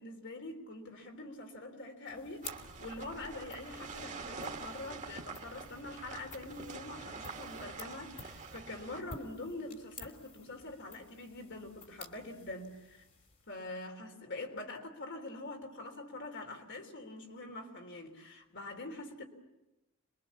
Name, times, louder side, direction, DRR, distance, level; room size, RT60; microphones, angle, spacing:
voice 1, 0.0-13.0 13.5-19.2, left 2 dB, 55° left, 3.6 m, -44 dB
sound 1, 2.1-13.7, left 4 dB, 35° left, 3.1 m, -54 dB
sound 2, 2.4-9.0, right 4 dB, 35° right, 1.9 m, -46 dB
28.0 x 22.5 x 7.2 m
head